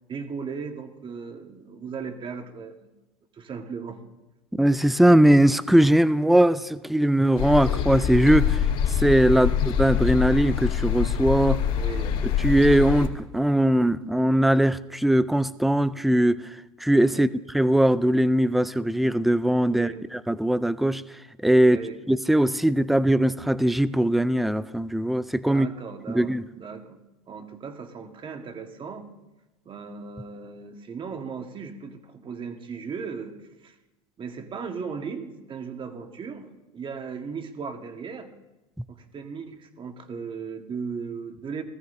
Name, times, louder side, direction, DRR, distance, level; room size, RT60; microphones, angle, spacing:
voice 1, 0.1-2.9 3.3-4.0 9.3-9.5 11.7-12.2 17.1-17.3 19.7-20.0 21.7-22.0 25.4-29.1 29.6-33.7 34.2-36.5 36.7-38.3 38.9-41.6, right 5 dB, 30° right, 6 dB, 1.5 m, -37 dB
voice 2, 4.6-8.6 9.0-11.6 12.4-16.4 16.8-17.3 17.5-21.0 21.4-21.8 22.1-25.7 26.1-26.4, right 1 dB, ahead, 16 dB, 0.4 m, -20 dB
sound 1, 7.4-13.1, left 8 dB, 55° left, 2.9 m, -25 dB
19.0 x 14.0 x 2.7 m, 1.1 s
hypercardioid pair, 105°, 18 cm